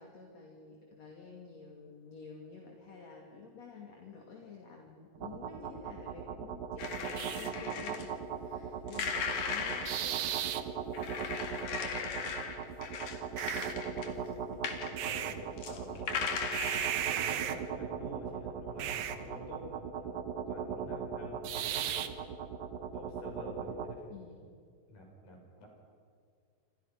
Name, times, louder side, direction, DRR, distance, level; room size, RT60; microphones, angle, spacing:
voice 1, 0.0-10.7 13.4-14.3 24.1-24.5, left 5 dB, 50° left, 0 dB, 3.6 m, -51 dB
sound 1, 5.2-23.9, right 8 dB, 75° right, 2.9 m, -37 dB
sound 2, 6.8-8.1 8.9-10.0 10.9-14.3 14.6-14.9 15.3-17.5, left 6 dB, 65° left, 3.7 m, -37 dB
voice 2, 14.6-16.3 17.1-22.2 22.9-24.3 24.9-25.7, left 1 dB, 80° left, 0 dB, 8.5 m, -48 dB
27.5 x 27.5 x 6.0 m, 2.2 s
omnidirectional pair, 4.1 m